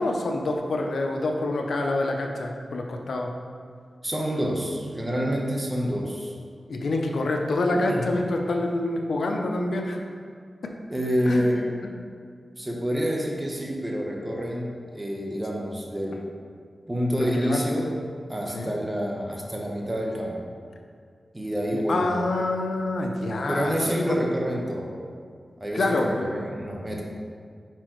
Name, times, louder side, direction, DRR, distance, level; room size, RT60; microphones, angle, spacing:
voice 1, 0.0-3.3 6.7-10.0 10.6-10.7 11.3-11.5 17.2-17.6 18.5-18.7 21.9-24.2 25.7-26.3, left 2 dB, 80° left, 2 dB, 0.5 m, -26 dB
voice 2, 4.0-6.3 7.9-8.0 10.9-11.7 12.6-16.2 16.9-17.9 18.3-20.4 21.3-22.2 23.5-25.0 25.6-27.0, equal, 20° right, -1 dB, 0.8 m, -28 dB
5.1 x 4.5 x 4.4 m, 2.1 s
wide cardioid pair, 80°, 0 cm